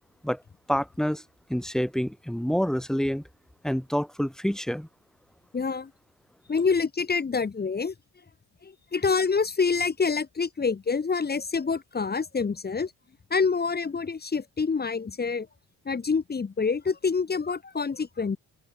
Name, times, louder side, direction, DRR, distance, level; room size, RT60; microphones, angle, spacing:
voice 1, 0.7-1.2 1.5-3.2 3.6-4.9, equal, ahead, 3.5 m, -27 dB
voice 2, 5.5-5.9 6.5-7.9 8.6-12.9 13.3-15.5 15.9-18.4, left 5 dB, 25° left, 1.8 m, -26 dB
open air
cardioid pair, 105°, 36 cm